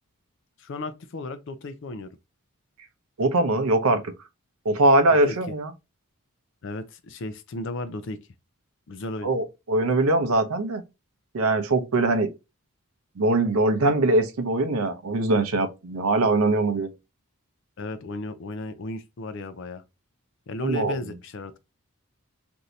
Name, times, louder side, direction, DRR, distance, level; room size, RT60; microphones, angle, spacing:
voice 1, 0.6-2.1 5.1-5.4 6.6-8.2 8.9-9.3 17.8-19.8 20.5-21.6, left 2 dB, 55° left, 0.4 m, -35 dB
voice 2, 3.2-4.1 4.6-5.7 9.2-10.8 11.3-12.3 13.2-16.9 20.6-21.0, right 2 dB, 75° right, 0.6 m, -22 dB
2.7 x 2.6 x 3.1 m
head